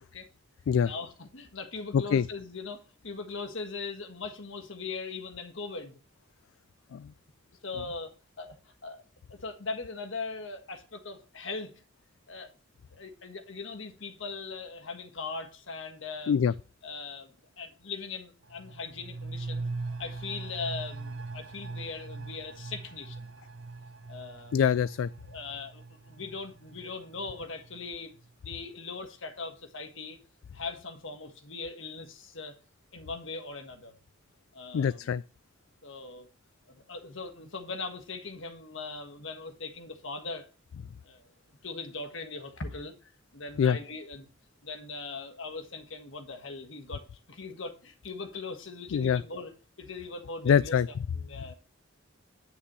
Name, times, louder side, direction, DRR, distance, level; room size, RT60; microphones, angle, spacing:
voice 1, 0.8-6.0 7.6-9.0 9.3-11.7 12.3-12.5 12.9-16.3 16.8-19.7 20.0-23.3 24.1-24.6 25.2-28.2 28.4-30.2 30.5-32.5 32.9-33.9 34.5-35.1 35.8-36.3 36.7-40.5 41.0-41.3 41.6-44.3 44.6-49.5 49.8-50.8 51.1-51.5, left 4 dB, 70° left, 1.5 m, -40 dB
voice 2, 1.9-2.2 6.9-7.1 16.3-16.5 24.5-25.1 34.7-35.2 43.6-43.8 48.9-49.2 50.5-50.9, left 7 dB, 90° left, 0.3 m, -24 dB
sound 1, 18.4-27.8 28.2-28.3, right 3 dB, 65° right, 0.7 m, -41 dB
9.7 x 8.4 x 3.1 m
head